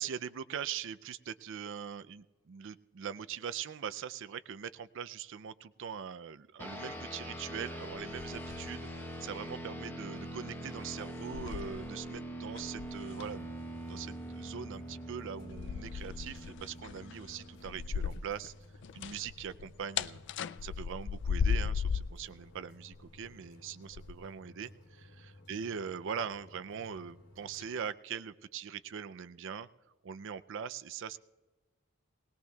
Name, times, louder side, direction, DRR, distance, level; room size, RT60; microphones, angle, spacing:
voice 1, 0.0-13.5 13.8-18.5 18.9-20.2 20.6-29.7 30.0-31.2, right 7 dB, 60° right, 14 dB, 0.4 m, -42 dB
sound 1, 6.6-18.3, right 1 dB, 10° left, 1.0 m, -43 dB
sound 2, 7.9-9.0 9.3-9.6 10.4-10.5 11.1-12.2 12.5-13.5 15.5-18.5 18.7-22.2 22.9-23.3 23.9-24.1, left 6 dB, 60° left, 0.4 m, -36 dB
sound 3, 13.2-27.7, left 1 dB, 85° left, 3.0 m, -57 dB
20.5 x 19.5 x 2.3 m, 1.2 s
head